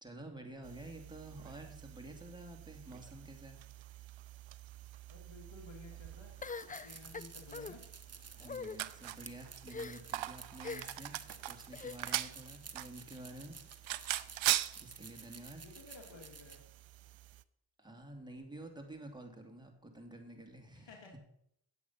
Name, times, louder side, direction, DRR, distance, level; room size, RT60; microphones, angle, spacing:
voice 1, 0.0-3.6 8.3-13.6 14.8-15.6 17.8-21.2, right 1 dB, 10° right, 2 dB, 2.6 m, -50 dB
sound 1, 0.6-17.4, right 14 dB, 75° right, 0.6 m, -43 dB
voice 2, 5.1-6.3 6.6-7.8 15.6-16.6 20.7-21.2, left 3 dB, 65° left, 1 dB, 2.7 m, -54 dB
sound 2, 6.4-7.7 8.4-8.8 9.7-10.2 10.6-11.1 11.7-12.3, left 4 dB, 20° left, 0.4 m, -43 dB
sound 3, 6.5-16.6, right 5 dB, 30° right, 1.2 m, -53 dB
8.9 x 8.3 x 5.6 m, 0.74 s
cardioid pair, 45°, 47 cm